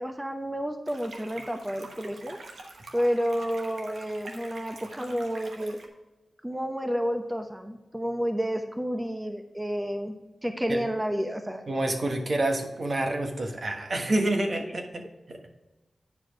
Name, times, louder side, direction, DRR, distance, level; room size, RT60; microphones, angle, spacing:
voice 1, 0.0-2.4 2.9-5.8 6.4-11.7 14.6-14.7, equal, 15° right, 6 dB, 0.8 m, -30 dB
sound 1, 0.9-5.9, right 3 dB, 80° right, 1.1 m, -45 dB
voice 2, 11.7-15.5, right 1 dB, 60° right, 3 dB, 1.4 m, -28 dB
9.7 x 4.9 x 4.6 m, 1.1 s
cardioid pair, 40°, 0 cm